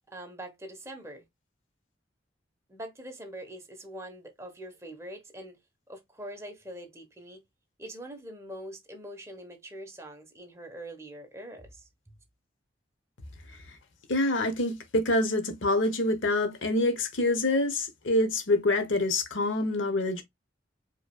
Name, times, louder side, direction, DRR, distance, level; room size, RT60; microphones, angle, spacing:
voice 1, 0.1-1.2 2.7-5.6 5.9-7.4 7.8-11.9, right 1 dB, 15° right, 1.0 m, -43 dB
voice 2, 14.1-20.2, left 2 dB, 90° left, 0.9 m, -26 dB
4.9 x 3.0 x 2.2 m
head